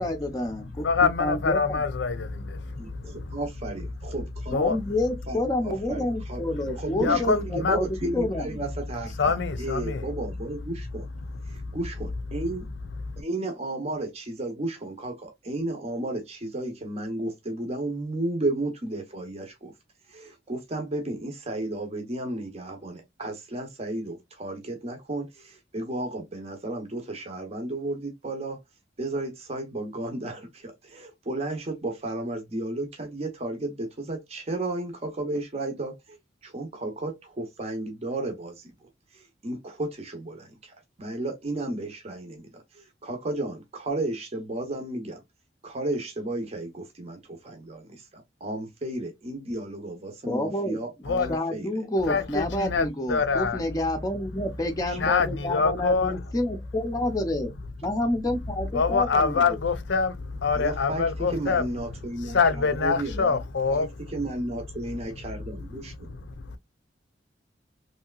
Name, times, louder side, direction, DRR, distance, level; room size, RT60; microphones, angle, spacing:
voice 1, 0.0-1.8 4.5-8.6 50.2-50.8 51.3-57.5 57.8-59.6, left 1 dB, 20° left, 0.5 m, -29 dB
voice 2, 0.8-3.3 4.5-4.8 7.0-7.8 9.2-10.0 11.3-11.8 51.0-51.4 52.0-53.6 55.0-56.2 58.7-61.7 62.2-63.9 66.5-66.6, left 5 dB, 75° left, 0.5 m, -25 dB
voice 3, 2.8-4.7 5.3-6.4 6.7-11.1 11.5-12.6 13.2-19.7 20.1-28.6 29.0-36.2 36.4-40.7 41.0-45.2 45.6-51.7 54.9-55.1 60.5-63.4 63.7-66.1, right 2 dB, 35° right, 0.7 m, -33 dB
3.2 x 2.8 x 2.2 m
head